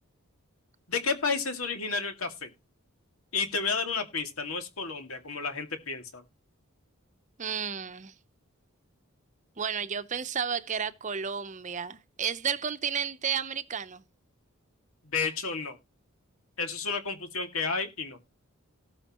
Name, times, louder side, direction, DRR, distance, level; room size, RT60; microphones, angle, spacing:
voice 1, 0.9-2.5 3.3-6.2 15.0-15.8 16.6-18.2, left 4 dB, 85° left, 2.2 m, -31 dB
voice 2, 7.4-8.1 9.6-14.0, right 7 dB, 35° right, 0.7 m, -32 dB
18.0 x 6.5 x 3.0 m
head